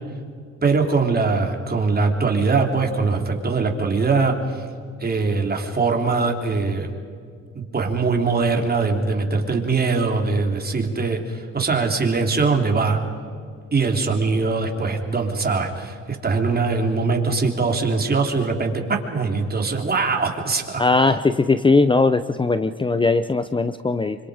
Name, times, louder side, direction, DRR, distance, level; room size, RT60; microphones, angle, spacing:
voice 1, 0.6-4.6 5.0-6.9 7.5-13.0 13.7-21.1, right 4 dB, 30° right, 2 dB, 3.5 m, -22 dB
voice 2, 20.8-24.2, left 3 dB, 15° left, 12 dB, 0.7 m, -19 dB
27.0 x 25.0 x 5.1 m, 2.2 s
cardioid pair, 90°, 30 cm